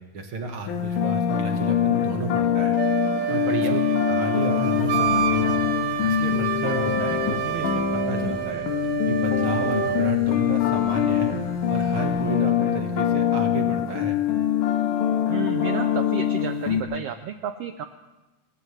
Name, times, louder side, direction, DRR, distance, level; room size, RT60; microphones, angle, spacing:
voice 1, 0.0-2.8 3.3-5.6 6.1-8.7 9.1-11.4 11.7-14.2, right 3 dB, 50° right, 4 dB, 2.1 m, -32 dB
sound 1, 0.7-16.8, left 9 dB, 90° left, 2.9 m, -24 dB
Wind instrument woodwind instrument, 2.7-10.2, right 10 dB, 65° right, 1.5 m, -28 dB
voice 2, 3.4-3.8 15.3-17.9, right 9 dB, 85° right, 8 dB, 1.4 m, -32 dB
sound 2, 4.7-12.7, left 2 dB, 60° left, 4.1 m, -44 dB
29.5 x 15.0 x 3.3 m, 1.1 s
omnidirectional pair, 3.5 m